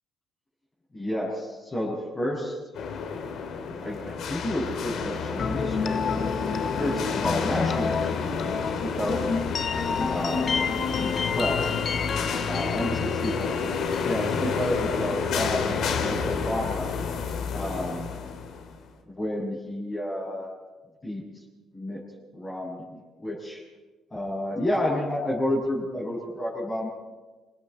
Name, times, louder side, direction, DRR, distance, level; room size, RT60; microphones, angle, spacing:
voice 1, 0.9-2.6 3.8-9.3 10.1-10.6 11.3-11.7 12.5-13.7 14.0-16.9 17.5-18.2 19.1-20.5 21.0-21.2 21.7-22.0 22.3-22.8 23.2-23.6 24.1-26.9, left 1 dB, 20° left, -6 dB, 6.5 m, -30 dB
sound 1, 2.7-18.8, left 5 dB, 65° left, 3.0 m, -30 dB
sound 2, 5.4-15.2, left 5 dB, 40° left, 1.0 m, -30 dB
28.5 x 24.0 x 4.4 m, 1.2 s
cardioid pair, 130°, 0 cm